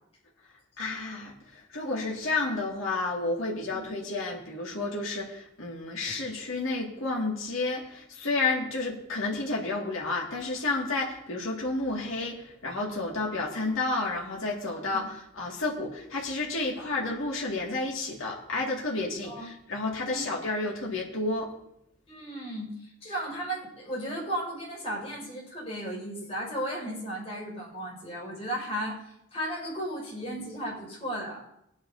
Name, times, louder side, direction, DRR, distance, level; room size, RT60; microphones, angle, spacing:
voice 1, 0.8-21.5, left 3 dB, 85° left, -3 dB, 2.3 m, -31 dB
voice 2, 22.1-31.4, right 1 dB, 30° left, -4 dB, 5.8 m, -35 dB
22.5 x 9.6 x 2.8 m, 0.79 s
head